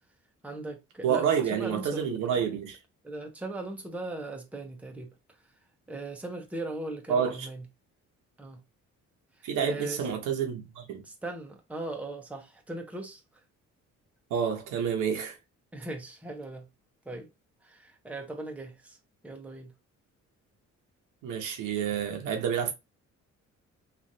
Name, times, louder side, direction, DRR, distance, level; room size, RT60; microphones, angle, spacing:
voice 1, 0.4-2.1 3.0-5.1 5.9-7.7 8.4-8.6 9.4-10.1 11.0-13.2 15.7-16.7 17.0-17.3 17.6-19.0 19.2-19.7, right 2 dB, 5° right, 0.7 m, -38 dB
voice 2, 1.0-2.8 7.1-7.5 9.4-11.0 14.3-15.4 21.2-22.7, right 8 dB, 85° right, 0.9 m, -29 dB
3.1 x 2.5 x 2.7 m
cardioid pair, 90°, 30 cm